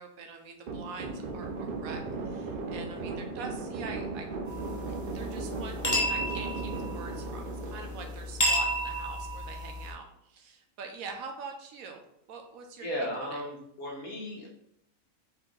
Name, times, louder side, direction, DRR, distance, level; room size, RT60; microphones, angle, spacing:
voice 1, 0.0-4.3 4.9-12.0 12.3-12.9 13.1-13.4, right 4 dB, 75° right, 4 dB, 1.1 m, -44 dB
sound 1, 0.7-9.0, right 3 dB, 60° right, 0.6 m, -37 dB
sound 2, 4.5-9.9, equal, 20° left, 0.6 m, -32 dB
voice 2, 12.8-14.5, equal, 75° left, -1 dB, 1.6 m, -35 dB
4.5 x 2.9 x 3.8 m, 0.74 s
omnidirectional pair, 1.5 m